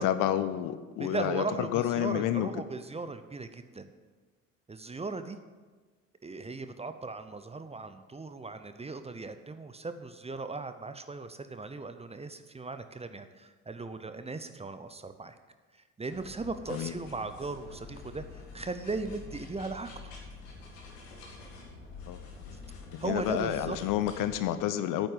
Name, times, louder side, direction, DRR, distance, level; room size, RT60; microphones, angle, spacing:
voice 1, 0.0-2.5 16.7-16.9 22.1-22.2 22.9-25.1, left 11 dB, 55° left, 11 dB, 0.8 m, -29 dB
voice 2, 1.0-3.9 4.7-5.4 6.2-15.4 15.7-19.9 23.0-23.8, right 3 dB, 15° right, 10 dB, 0.8 m, -38 dB
sound 1, 16.1-24.4, left 3 dB, 75° left, 2.1 m, -47 dB
8.9 x 8.0 x 7.4 m, 1.4 s
figure-of-eight pair, 50°, 39 cm